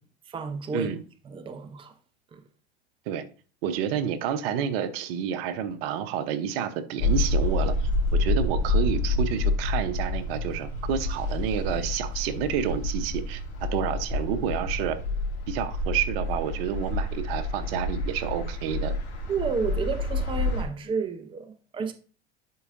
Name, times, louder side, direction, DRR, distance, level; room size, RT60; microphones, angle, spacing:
voice 1, 0.3-0.9 1.2-1.9 2.3-2.4 19.3-21.9, right 5 dB, 15° right, 0.6 m, -31 dB
voice 2, 3.6-15.0 15.5-18.9, right 9 dB, 55° right, 0.9 m, -29 dB
sound 1, 7.0-20.6, left 2 dB, 75° left, 3.3 m, -28 dB
11.0 x 4.7 x 2.5 m
hypercardioid pair, 90°, 34 cm